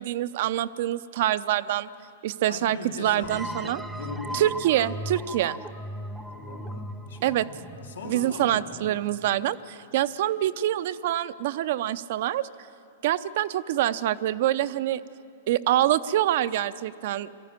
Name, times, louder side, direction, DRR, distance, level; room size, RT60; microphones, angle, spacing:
voice 1, 0.0-1.9 2.2-3.8 4.3-5.6 7.2-7.5 8.0-12.5 13.0-15.0 15.5-17.3, right 13 dB, 60° right, 14 dB, 0.7 m, -25 dB
voice 2, 2.5-4.4 6.2-8.8, left 2 dB, 85° left, 1 dB, 4.5 m, -39 dB
sound 1, 3.2-8.7, equal, 5° right, 0.8 m, -37 dB
22.0 x 14.0 x 9.7 m, 2.5 s
hypercardioid pair, 110°, 0 cm